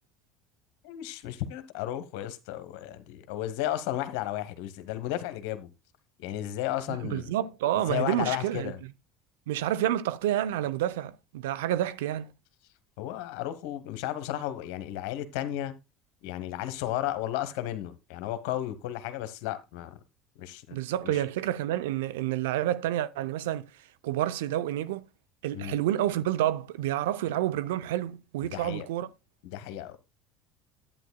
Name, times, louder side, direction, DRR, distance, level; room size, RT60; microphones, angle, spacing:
voice 1, 0.8-5.7 6.2-7.3 7.7-8.8 13.0-15.7 16.2-19.9 20.4-21.2 25.5-25.8 28.4-28.9 29.4-30.0, left 13 dB, 75° left, 1.0 m, -34 dB
voice 2, 6.9-8.7 9.5-12.3 20.7-23.7 24.0-25.1 25.4-29.1, right 12 dB, 80° right, 0.5 m, -29 dB
11.0 x 8.9 x 2.2 m
hypercardioid pair, 75°, 0 cm